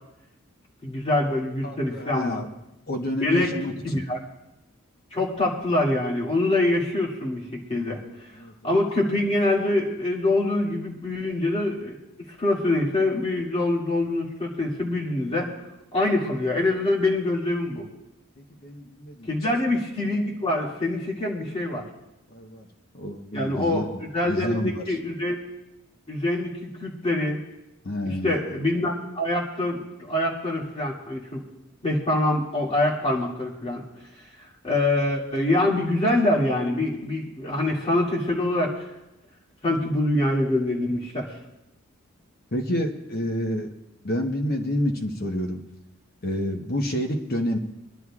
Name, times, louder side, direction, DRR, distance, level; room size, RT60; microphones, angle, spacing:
voice 1, 0.8-2.4 3.2-3.5 3.8-4.2 5.1-8.0 8.6-12.0 12.4-15.5 15.9-17.8 19.3-21.8 23.3-23.9 24.1-25.4 26.1-27.4 28.1-29.8 30.1-31.4 31.8-33.8 34.6-38.8 39.6-41.3, left 1 dB, 30° left, -4 dB, 2.3 m, -25 dB
voice 2, 1.6-2.5 2.9-4.1 7.9-8.0 8.4-8.5 18.4-19.3 22.3-22.6 22.9-24.0 24.3-24.8 27.8-28.4 42.5-43.7 44.0-45.6 46.2-47.6, left 1 dB, 45° left, 3 dB, 1.1 m, -29 dB
25.0 x 11.0 x 2.4 m, 0.93 s
head